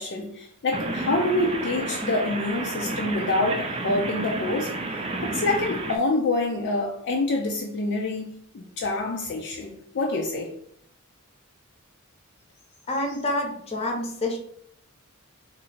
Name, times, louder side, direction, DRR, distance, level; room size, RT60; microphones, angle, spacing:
voice 1, 0.0-4.7 5.2-10.5 13.1-13.2, left 2 dB, 55° left, 0.4 m, -26 dB
sound 1, 0.7-6.0, right 2 dB, 25° right, 0.4 m, -31 dB
voice 2, 12.9-14.4, left 1 dB, 30° left, 0.7 m, -27 dB
2.8 x 2.6 x 4.1 m
head